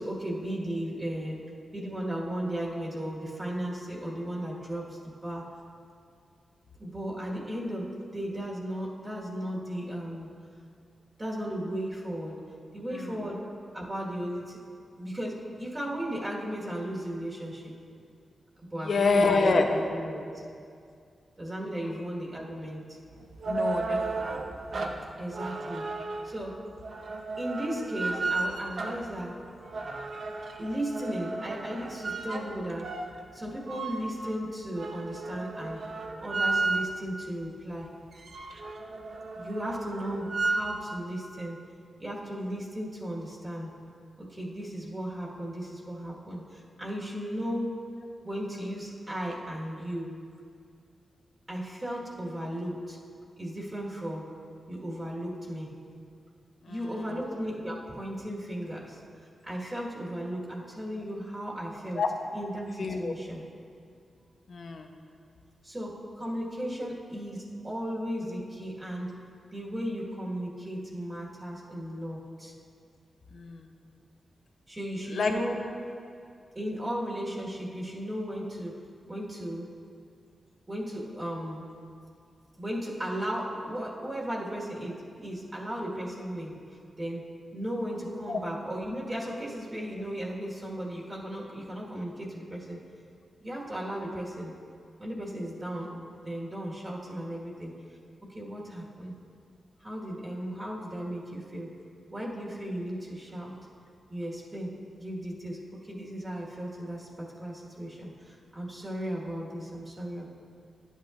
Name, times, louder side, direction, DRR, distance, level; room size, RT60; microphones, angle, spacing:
voice 1, 0.0-1.4 1.7-5.5 6.8-10.3 11.2-12.4 12.7-13.4 13.7-14.6 14.9-17.7 18.7-20.4 21.4-23.0 25.2-25.8 26.2-26.5 27.4-29.4 30.6-32.9 33.3-35.8 36.2-37.9 39.4-41.6 42.0-43.7 44.2-47.8 48.2-50.1 51.5-53.0 53.4-54.2 54.7-55.7 56.7-62.0 62.3-63.4 65.6-69.1 69.5-72.5 74.7-75.6 76.5-78.7 79.1-79.7 80.7-81.7 82.6-86.5 87.0-87.3 87.5-92.8 93.4-94.5 95.0-97.7 98.3-99.1 99.8-101.7 102.1-103.5 104.1-104.7 105.0-110.3, equal, 25° right, -4 dB, 1.5 m, -35 dB
voice 2, 18.8-19.7 21.8-21.9 23.5-24.5 56.6-57.2 62.0-62.1 62.8-63.1 64.5-64.9 73.3-73.7 75.1-75.3 88.3-88.4, left 4 dB, 65° left, 4 dB, 0.7 m, -27 dB
sound 1, 23.1-37.2 37.6-37.7 38.0-40.9, right 3 dB, 65° right, 0.7 m, -34 dB
11.5 x 8.3 x 2.5 m, 2.3 s
cardioid pair, 75°, 0 cm